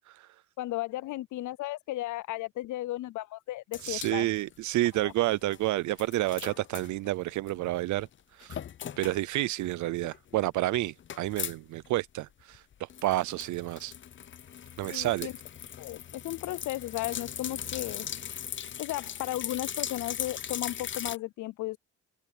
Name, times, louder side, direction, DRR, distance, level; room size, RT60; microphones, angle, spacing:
voice 1, 0.6-4.3 5.0-5.1 14.9-15.3 15.8-18.1 18.8-21.8, left 16 dB, 75° left, 0.6 m, -35 dB
sound 1, 3.7-5.6 5.9-7.7 8.0-8.1 8.4-9.2 9.6-11.6 11.8-11.9 12.2-21.2, left 9 dB, 40° left, 0.6 m, -39 dB
voice 2, 3.8-8.1 8.3-8.6 9.0-13.9 14.8-15.3, right 16 dB, 75° right, 0.5 m, -30 dB
cardioid pair, 90°, 30 cm